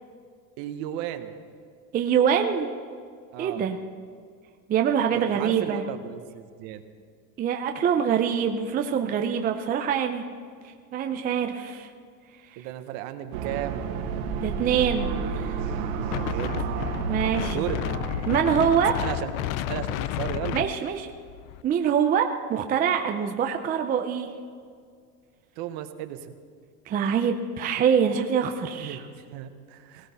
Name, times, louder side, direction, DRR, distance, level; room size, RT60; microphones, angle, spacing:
voice 1, 0.6-1.3 3.3-3.7 5.1-6.8 12.6-13.8 16.0-16.7 17.0-17.1 17.5-17.8 19.0-19.3 19.7-20.6 25.6-26.3 28.7-30.1, right 12 dB, 55° right, 9 dB, 1.2 m, -35 dB
voice 2, 1.9-2.7 3.4-3.8 4.7-5.8 7.4-10.2 10.9-11.9 14.4-15.5 17.1-17.7 18.3-19.0 20.5-21.1 21.6-24.3 26.9-29.0, right 8 dB, 20° right, 5 dB, 0.6 m, -24 dB
sound 1, 13.3-18.9, right 5 dB, 70° right, 2.1 m, -31 dB
Wind, 16.1-21.6, left 13 dB, 65° left, 0.7 m, -31 dB
18.0 x 16.5 x 4.3 m, 2.1 s
supercardioid pair, 145°, 44 cm